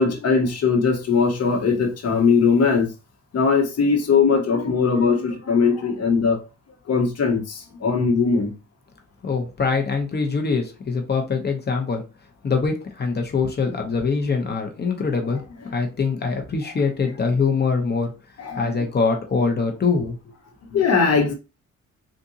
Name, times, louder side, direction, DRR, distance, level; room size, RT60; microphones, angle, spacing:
voice 1, 0.0-2.9 3.3-6.4 6.9-8.5 18.4-18.7 20.7-21.3, left 5 dB, 55° left, 1.2 m, -20 dB
voice 2, 9.2-12.0 12.4-15.4 15.7-18.1 18.6-20.3, left 4 dB, 35° left, 0.9 m, -23 dB
3.7 x 2.5 x 2.8 m
cardioid pair, 90°, 30 cm